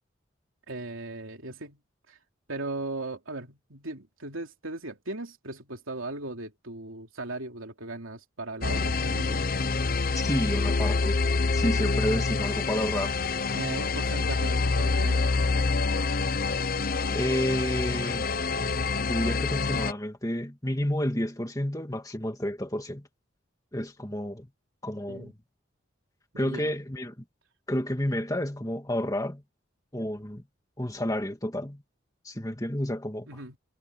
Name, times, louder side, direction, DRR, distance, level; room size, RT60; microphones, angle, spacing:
voice 1, 0.7-1.8 2.1-2.2 2.5-9.4 13.5-15.3 25.1-25.3 26.3-26.7 33.3-33.6, right 2 dB, 85° right, 3.1 m, -38 dB
sound 1, 8.6-19.9, left 4 dB, 45° left, 0.7 m, -27 dB
voice 2, 10.1-11.2 11.5-13.1 17.1-18.2 18.5-23.1 23.7-24.5 24.8-25.3 26.4-27.2 27.7-29.4 29.9-30.4 30.8-31.8 32.2-33.3, left 1 dB, 15° left, 2.2 m, -30 dB
head